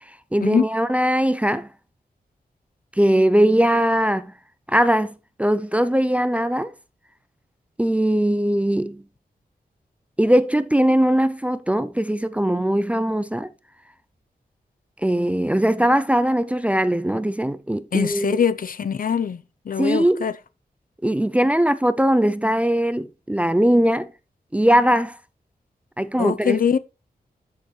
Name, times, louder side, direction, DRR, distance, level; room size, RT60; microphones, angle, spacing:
voice 1, 0.3-1.7 3.0-4.3 4.7-6.7 7.8-9.0 10.2-13.5 15.0-18.4 19.8-20.2 21.0-24.1 24.5-25.2 26.0-26.6, right 1 dB, 10° right, 0.4 m, -20 dB
voice 2, 17.9-19.4 19.7-20.3 26.2-26.8, left 7 dB, 60° left, 0.7 m, -22 dB
12.5 x 6.6 x 3.2 m
wide cardioid pair, 130°, 16 cm